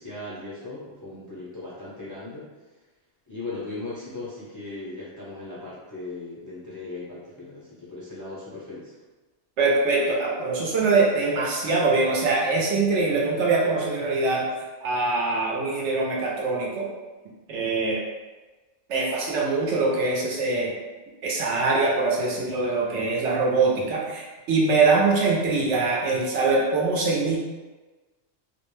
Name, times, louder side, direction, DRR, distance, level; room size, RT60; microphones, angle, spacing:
voice 1, 0.0-2.5 3.3-8.9, left 2 dB, 25° left, -9 dB, 0.4 m, -38 dB
voice 2, 9.6-14.5 14.8-16.9 17.5-18.0 18.9-20.7 21.2-27.4, right 3 dB, 75° right, -3 dB, 0.9 m, -23 dB
2.5 x 2.1 x 3.0 m, 1.2 s
omnidirectional pair, 1.2 m